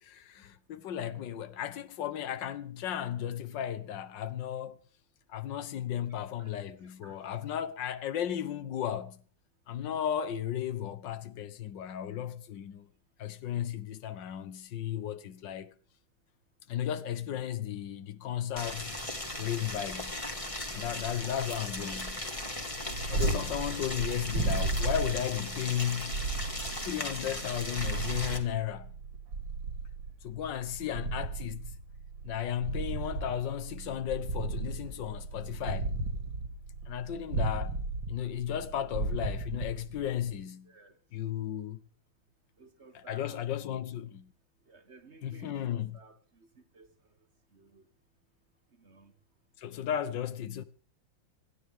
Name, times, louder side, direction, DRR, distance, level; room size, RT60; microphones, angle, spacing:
voice 1, 0.0-4.8 5.3-9.2 9.7-12.9 13.2-15.7 16.7-19.0 19.4-20.2 20.7-22.2 23.1-26.3 26.8-28.9 30.2-31.7 32.2-36.0 36.9-37.8 38.1-40.7 41.1-41.8 42.9-44.3 45.2-46.0 49.6-50.6, left 10 dB, 70° left, 1.8 m, -35 dB
voice 2, 7.0-7.3 40.6-41.0 42.6-43.4 43.7-43.8 44.7-46.9 47.5-47.9 48.8-49.1 50.1-50.2, right 3 dB, 35° right, 1.7 m, -56 dB
Boiling, 18.6-28.4, left 1 dB, 15° left, 2.4 m, -38 dB
Purr, 22.7-40.3, right 3 dB, 75° right, 2.9 m, -35 dB
26.0 x 13.0 x 3.7 m
omnidirectional pair, 2.1 m